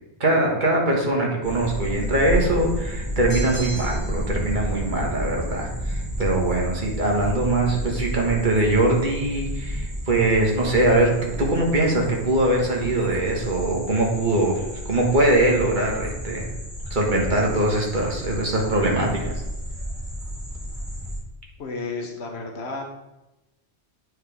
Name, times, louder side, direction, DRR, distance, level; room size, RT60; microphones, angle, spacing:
voice 1, 0.2-11.1 11.4-16.5 16.9-19.3, right 1 dB, 45° right, -1 dB, 1.6 m, -22 dB
sound 1, 1.4-21.2, equal, ahead, 2.4 m, -31 dB
sound 2, 3.3-4.3, right 1 dB, 25° right, 1.5 m, -37 dB
voice 2, 21.6-22.8, left 3 dB, 75° left, 2 dB, 1.2 m, -32 dB
9.2 x 4.6 x 3.5 m, 0.97 s
omnidirectional pair, 1.1 m